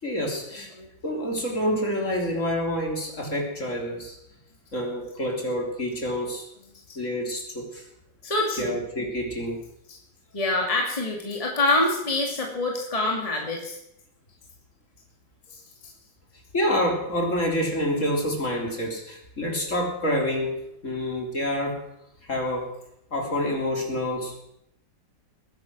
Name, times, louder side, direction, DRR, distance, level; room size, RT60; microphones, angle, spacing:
voice 1, 0.0-0.7 1.0-4.2 4.7-6.4 7.0-7.9 8.6-9.6 16.5-20.6 20.8-21.8 22.3-22.7 23.1-24.4, equal, 40° left, 0 dB, 3.8 m, -27 dB
voice 2, 8.2-8.8 9.9-10.0 10.3-13.8 15.5-15.6, left 2 dB, 20° left, 0 dB, 2.4 m, -26 dB
20.5 x 10.5 x 6.1 m, 0.79 s
omnidirectional pair, 2.0 m